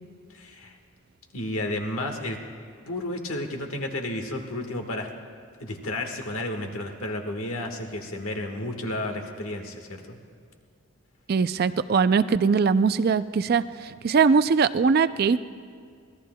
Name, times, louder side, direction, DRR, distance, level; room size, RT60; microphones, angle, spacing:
voice 1, 0.3-0.7 1.3-2.4 2.9-5.1 5.6-10.2, left 1 dB, 85° left, 4 dB, 1.5 m, -32 dB
voice 2, 11.3-15.5, right 5 dB, 45° right, 13 dB, 0.3 m, -21 dB
25.0 x 17.5 x 2.2 m, 2.2 s
head